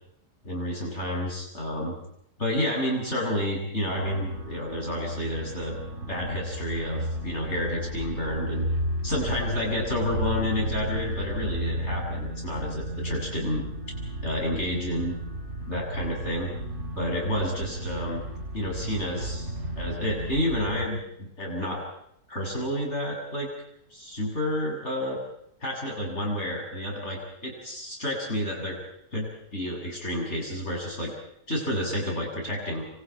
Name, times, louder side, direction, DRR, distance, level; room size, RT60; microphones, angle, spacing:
voice 1, 0.4-1.9 2.4-5.8 6.1-8.6 9.0-13.6 14.2-15.2 15.7-16.5 16.9-18.2 18.5-19.5 19.8-21.8 22.3-23.5 23.9-25.2 25.6-28.8 29.1-31.1 31.5-32.8, left 1 dB, 40° left, -1 dB, 8.2 m, -30 dB
sound 1, 3.9-20.9, equal, 45° right, 4.1 m, -34 dB
28.0 x 26.5 x 4.7 m, 0.73 s
omnidirectional pair, 1.9 m